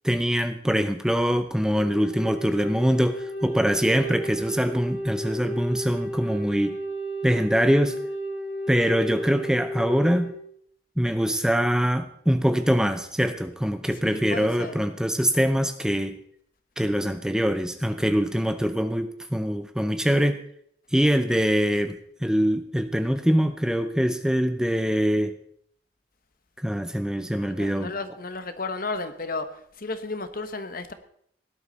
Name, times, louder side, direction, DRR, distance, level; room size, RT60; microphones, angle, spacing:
voice 1, 0.0-6.8 7.2-8.0 8.7-10.3 11.0-16.2 16.8-20.4 20.9-25.3 26.6-27.9, equal, 5° right, 9 dB, 0.6 m, -23 dB
Wind instrument woodwind instrument, 1.7-10.4, right 1 dB, 75° left, 4.4 m, -33 dB
voice 2, 13.9-14.8 27.3-29.5 29.8-30.9, left 3 dB, 50° left, 9 dB, 1.3 m, -33 dB
18.0 x 12.0 x 4.1 m, 0.67 s
head